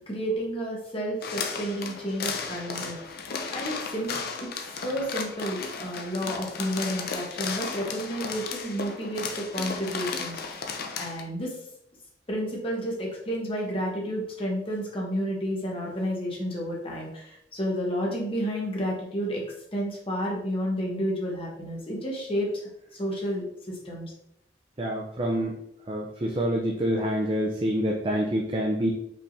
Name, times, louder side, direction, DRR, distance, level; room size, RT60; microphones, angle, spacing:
voice 1, 0.1-3.0 3.5-4.1 4.4-4.5 4.8-10.6 11.0-11.6 12.3-19.4 19.7-22.5 22.9-24.1, equal, 35° left, -2 dB, 1.3 m, -31 dB
sound 1, 1.2-11.2, left 5 dB, 60° left, 0.6 m, -34 dB
voice 2, 24.8-25.6 25.9-28.9, equal, 30° right, -1 dB, 0.5 m, -27 dB
5.4 x 3.6 x 2.7 m, 0.77 s
head